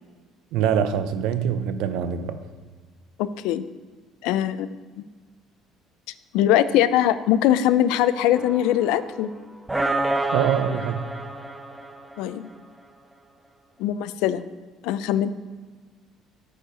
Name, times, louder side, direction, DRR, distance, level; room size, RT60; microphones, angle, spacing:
voice 1, 0.5-2.4 10.3-11.0, right 8 dB, 70° right, 10 dB, 0.6 m, -24 dB
voice 2, 3.2-3.6 4.2-5.0 6.3-9.3 12.2-12.5 13.8-14.4 14.8-15.3, left 11 dB, 90° left, 15 dB, 0.4 m, -22 dB
sound 1, 8.3-9.3 9.7-12.5, right 2 dB, 5° right, 0.4 m, -28 dB
8.7 x 5.1 x 5.0 m, 1.4 s
cardioid pair, 180°, 0 cm